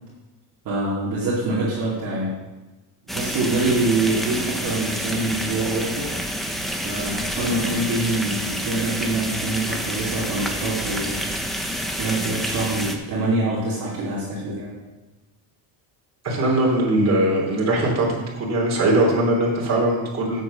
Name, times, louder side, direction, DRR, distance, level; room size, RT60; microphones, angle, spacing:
voice 1, 0.6-2.4 3.1-6.2 6.8-11.5 11.8-14.7, right 2 dB, 55° right, -6 dB, 2.5 m, -25 dB
sound 1, 3.1-12.9, equal, ahead, 1.0 m, -28 dB
voice 2, 16.2-18.1 18.3-20.4, right 1 dB, 40° right, -2 dB, 3.4 m, -20 dB
8.1 x 6.9 x 6.4 m, 1.1 s
cardioid pair, 125°, 41 cm